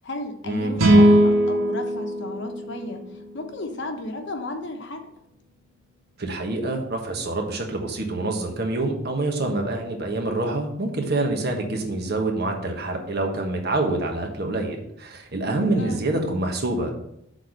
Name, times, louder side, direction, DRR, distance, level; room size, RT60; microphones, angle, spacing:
voice 1, 0.0-5.1 15.8-16.0, left 2 dB, 60° left, 5 dB, 1.0 m, -34 dB
sound 1, 0.8-4.1, right 1 dB, 85° right, 1.9 m, -20 dB
voice 2, 6.2-17.0, right 2 dB, 50° right, 2 dB, 1.3 m, -26 dB
6.7 x 4.1 x 6.5 m, 0.77 s
head